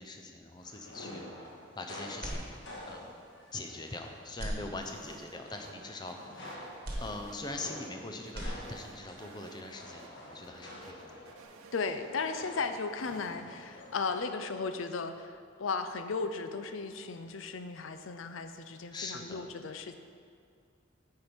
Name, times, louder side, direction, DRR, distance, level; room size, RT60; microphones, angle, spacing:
voice 1, 0.0-3.1 3.5-6.6 7.0-11.2 18.9-19.5, left 2 dB, 20° left, 4 dB, 0.6 m, -43 dB
sound 1, 0.5-4.5 4.9-14.2, left 1 dB, 60° left, 1.7 m, -48 dB
sound 2, 2.2-3.1 3.5-3.6 4.3-5.3 6.8-7.9 8.2-9.1, equal, 45° right, 1.3 m, -40 dB
sound 3, 4.8-5.4 5.6-5.7 6.1-7.9 8.3-9.7 10.0-10.1 10.4-12.3 12.6-13.4, right 5 dB, 90° right, 0.5 m, -56 dB
voice 2, 11.7-15.3 15.6-19.9, left 4 dB, 75° left, 8 dB, 0.5 m, -35 dB
9.4 x 4.5 x 5.1 m, 2.2 s
head